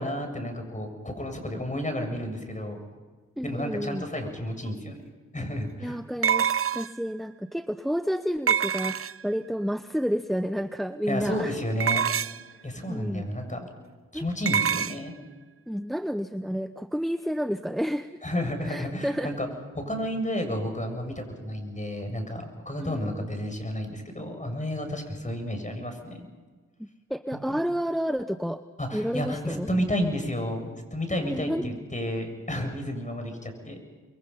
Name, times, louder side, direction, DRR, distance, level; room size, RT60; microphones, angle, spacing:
voice 1, 0.0-2.8 3.4-5.0 5.3-6.0 11.1-12.0 12.3-13.7 14.1-15.1 18.2-19.5 19.8-26.3 27.5-27.6 28.8-33.8, equal, 25° left, 5 dB, 7.2 m, -31 dB
voice 2, 3.4-4.1 5.8-11.5 12.9-13.3 14.1-14.3 15.7-18.1 18.7-19.3 22.8-23.0 26.8-28.6 28.9-29.7 31.3-31.8, equal, ahead, 11 dB, 0.9 m, -30 dB
sound 1, 4.7-4.8 6.2-7.1 8.5-9.4 11.8-12.5 14.5-15.0, right 8 dB, 45° right, 0.6 m, -25 dB
26.0 x 23.0 x 5.7 m, 1.4 s
supercardioid pair, 40°, 32 cm